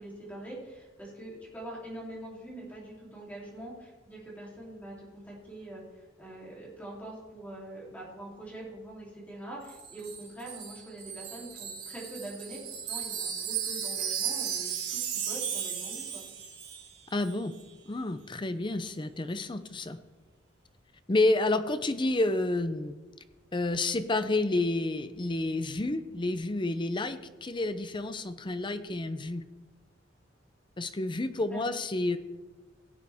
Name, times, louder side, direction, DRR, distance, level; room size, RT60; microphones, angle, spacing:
voice 1, 0.0-16.3 31.5-31.8, right 1 dB, 10° left, -5 dB, 3.2 m, -44 dB
Wind chime, 9.7-16.9 17.2-17.4, right 8 dB, 85° right, 2.0 m, -35 dB
voice 2, 17.1-17.5 17.9-20.0 21.1-23.0 23.5-29.4 30.8-32.2, left 2 dB, 25° left, 11 dB, 0.6 m, -29 dB
16.5 x 9.1 x 3.5 m, 1.2 s
head